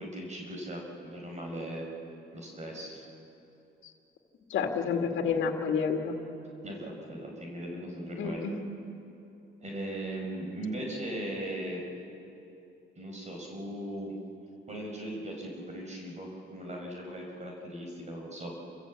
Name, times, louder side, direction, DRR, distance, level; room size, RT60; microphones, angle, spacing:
voice 1, 0.0-1.8 2.3-3.0 6.6-8.5 9.6-11.8 13.0-14.1 14.7-18.5, right 1 dB, 35° right, 0 dB, 5.1 m, -38 dB
voice 2, 4.5-6.2 8.2-8.5, left 6 dB, 75° left, 3 dB, 2.2 m, -29 dB
28.5 x 15.0 x 8.4 m, 2.8 s
cardioid pair, 90°, 20 cm